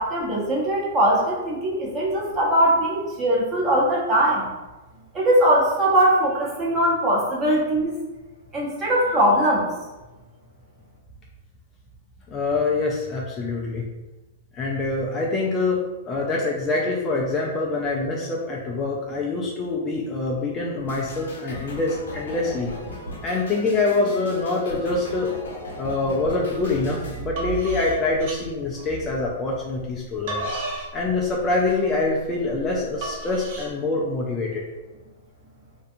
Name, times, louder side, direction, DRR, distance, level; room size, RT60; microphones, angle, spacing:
voice 1, 0.0-4.5 5.1-8.0 8.5-9.7, right 1 dB, 20° right, -5 dB, 0.8 m, -21 dB
voice 2, 12.3-13.8 14.5-22.7 23.2-25.3 25.8-30.5 30.9-34.6, left 3 dB, 20° left, -3 dB, 0.3 m, -25 dB
sound 1, 20.9-27.2, left 1 dB, 90° left, 0.6 m, -38 dB
sound 2, 27.4-29.3 29.9-33.7, right 1 dB, 55° right, 0.7 m, -34 dB
2.6 x 2.3 x 2.6 m, 1.1 s
hypercardioid pair, 140°, 0 cm